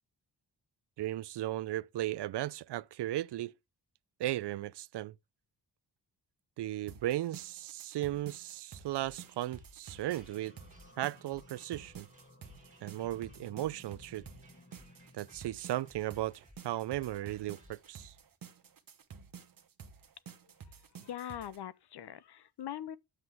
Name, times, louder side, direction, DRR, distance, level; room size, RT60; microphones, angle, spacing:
voice 1, 1.0-3.5 4.2-5.1 6.6-10.5 11.0-12.1 12.8-14.2 15.1-18.1, right 14 dB, 70° right, 0.5 m, -36 dB
sound 1, 6.9-21.6, right 6 dB, 50° right, 1.3 m, -52 dB
sound 2, 9.0-18.1, equal, 20° right, 2.4 m, -62 dB
sound 3, 9.9-16.6, left 1 dB, 30° left, 3.8 m, -59 dB
voice 2, 21.0-23.0, left 10 dB, 65° left, 0.8 m, -42 dB
9.7 x 7.7 x 3.5 m
wide cardioid pair, 115°, 43 cm